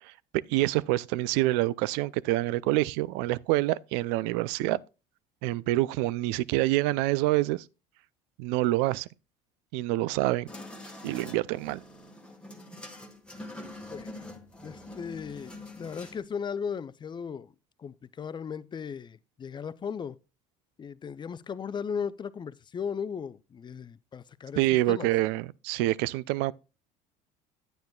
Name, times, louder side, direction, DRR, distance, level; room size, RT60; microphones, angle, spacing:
voice 1, 0.0-4.8 5.4-7.6 8.4-9.1 9.7-10.5 11.0-11.8 24.6-26.5, right 17 dB, 80° right, 0.4 m, -27 dB
sound 1, 10.5-16.2, left 1 dB, 5° left, 1.5 m, -44 dB
voice 2, 13.9-14.3 14.6-17.5 17.8-20.2 20.8-25.1, left 6 dB, 25° left, 0.5 m, -37 dB
9.4 x 9.1 x 2.3 m
supercardioid pair, 95°, 17 cm